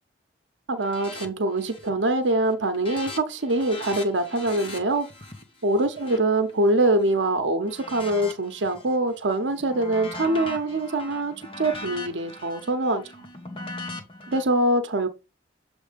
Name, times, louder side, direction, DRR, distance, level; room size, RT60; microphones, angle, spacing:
voice 1, 0.7-5.1 5.6-13.0 14.3-15.1, right 2 dB, 85° right, 0.8 m, -24 dB
sound 1, 0.8-1.3 1.6-2.0 2.3-7.1 7.6-9.0 9.3-14.4, left 2 dB, 30° left, 1.4 m, -40 dB
7.4 x 3.4 x 5.1 m
head